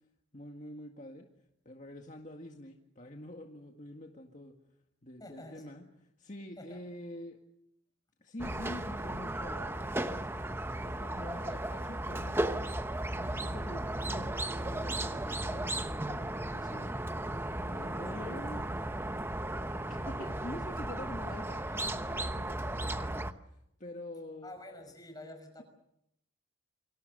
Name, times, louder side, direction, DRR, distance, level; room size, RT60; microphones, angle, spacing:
voice 1, 0.3-1.3 1.7-4.5 5.0-5.8 6.2-7.4 8.2-10.3 10.8-12.8 13.1-17.0 17.6-18.7 19.9-24.5, left 1 dB, 35° left, 2 dB, 1.9 m, -46 dB
voice 2, 5.2-5.8 6.6-6.8 24.4-25.6, left 1 dB, 20° left, 6 dB, 5.9 m, -48 dB
Squeak, 8.4-23.3, right 1 dB, 10° right, 1.0 m, -35 dB
29.0 x 25.0 x 6.8 m, 0.78 s
head